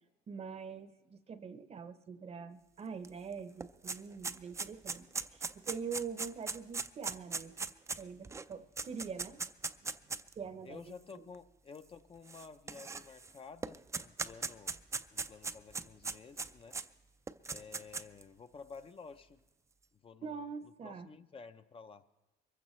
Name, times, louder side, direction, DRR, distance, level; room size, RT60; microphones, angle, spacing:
voice 1, 0.3-7.7 8.0-9.4 9.8-9.9 10.4-10.8 11.1-11.3 20.2-21.1, right 6 dB, 40° right, 11 dB, 0.8 m, -44 dB
sound 1, 3.0-3.1 3.4-10.3 11.1-11.2 12.3-13.3 13.6-16.8 17.3-18.2, right 4 dB, 15° right, 0.4 m, -39 dB
voice 2, 10.6-14.8 15.1-16.8 17.5-19.4 20.0-20.4 20.8-22.0, left 5 dB, 35° left, 9 dB, 0.6 m, -52 dB
23.0 x 15.0 x 3.2 m, 1.1 s
cardioid pair, 110°, 17 cm